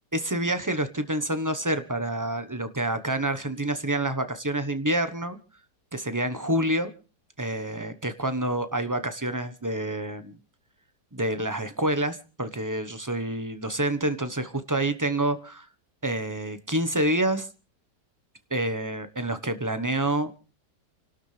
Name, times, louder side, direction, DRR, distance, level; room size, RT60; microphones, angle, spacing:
voice 1, 0.1-5.4 5.9-6.9 7.4-10.4 11.1-15.7 16.0-17.5 18.5-20.3, right 1 dB, 15° right, 10 dB, 0.8 m, -28 dB
29.5 x 12.5 x 3.3 m, 0.36 s
omnidirectional pair, 1.9 m